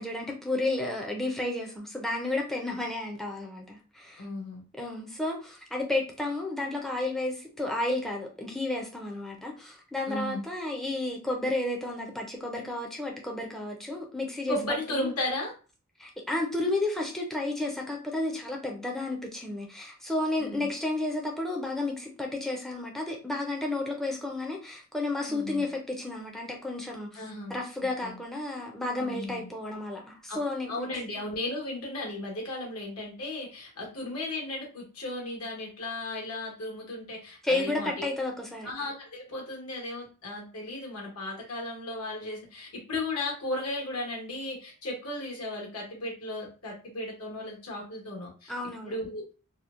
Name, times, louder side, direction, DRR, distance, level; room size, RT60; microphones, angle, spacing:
voice 1, 0.0-4.2 4.8-14.6 14.9-15.1 16.0-27.2 27.5-30.9 37.4-38.7 48.5-48.9, left 2 dB, ahead, 0 dB, 0.4 m, -32 dB
voice 2, 4.2-4.6 10.1-10.4 14.5-15.5 20.4-20.7 25.3-25.7 27.1-27.6 28.0-28.2 29.0-29.5 30.3-30.4 30.7-38.1 38.6-48.5 48.9-49.3, left 1 dB, 85° left, 0 dB, 1.1 m, -35 dB
2.8 x 2.0 x 2.3 m, 0.36 s
head